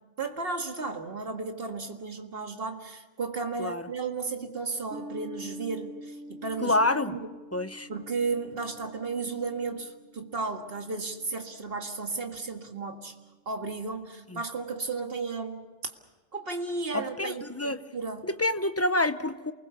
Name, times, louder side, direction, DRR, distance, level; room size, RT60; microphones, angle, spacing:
voice 1, 0.2-6.8 7.1-7.3 7.9-13.2 13.5-15.7 16.3-18.2, right 4 dB, 55° right, 2.1 m, -34 dB
sound 1, 4.9-11.6, equal, 75° right, 1.5 m, -46 dB
voice 2, 6.6-7.1 7.5-7.9 14.3-14.4 16.9-17.8 18.2-19.5, left 2 dB, 15° left, 0.7 m, -27 dB
28.5 x 20.5 x 7.1 m
omnidirectional pair, 1.2 m